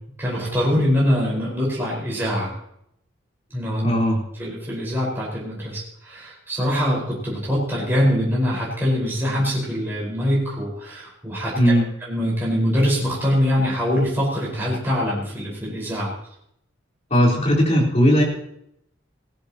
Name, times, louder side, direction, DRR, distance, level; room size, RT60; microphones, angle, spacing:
voice 1, 0.2-2.5 3.5-3.9 4.4-11.7 12.1-16.1, equal, 10° right, -5 dB, 4.9 m, -23 dB
voice 2, 3.8-4.2 11.6-11.9 17.1-18.2, equal, 35° left, -3 dB, 4.1 m, -17 dB
19.0 x 14.5 x 3.0 m, 0.74 s
head